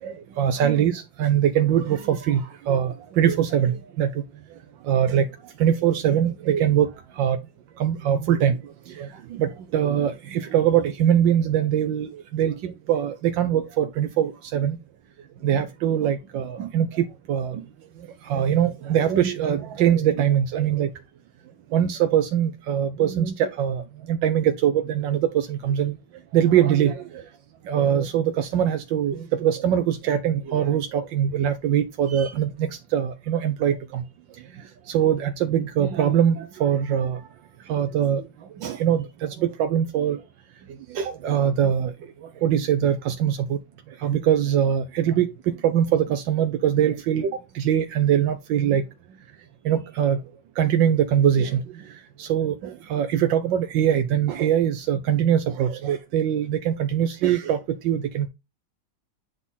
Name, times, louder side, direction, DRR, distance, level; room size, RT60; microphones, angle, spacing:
voice 1, 0.0-4.2 4.8-5.3 5.6-6.9 7.2-7.4 7.8-8.6 8.9-14.8 15.4-17.6 18.2-20.9 21.7-23.8 24.1-26.0 26.3-27.2 27.7-34.0 34.9-37.2 37.7-38.3 38.6-40.2 40.9-41.9 42.2-43.6 44.0-48.8 49.6-50.2 50.6-51.6 52.2-58.3, right 9 dB, 85° right, 1.5 m, -22 dB
8.6 x 3.7 x 3.9 m
omnidirectional pair, 2.0 m